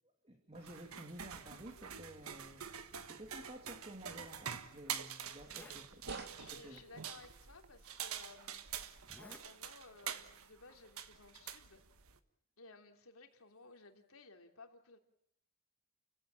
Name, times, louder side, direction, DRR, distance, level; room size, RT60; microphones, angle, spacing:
voice 1, 0.2-2.7 3.1-6.0 6.5-6.8, right 1 dB, 30° right, 4 dB, 2.4 m, -52 dB
sound 1, 0.5-12.2, right 8 dB, 90° right, 1.5 m, -46 dB
Zipper (clothing), 4.4-4.5 5.0-5.1 5.3-5.9 6.7-6.8 7.8-7.9 9.0-9.5 9.8-10.1, left 1 dB, 5° left, 1.6 m, -57 dB
sound 2, 6.0-7.5 8.0-9.4 9.7-10.1 10.5-10.6 10.8-11.3 11.7-11.9 12.3-12.7 13.0-14.2, right 4 dB, 50° right, 3.1 m, -60 dB
voice 2, 6.3-8.6 9.2-11.8 12.6-15.0, left 3 dB, 90° left, 4 dB, 3.2 m, -58 dB
29.5 x 16.0 x 8.9 m, 0.69 s
head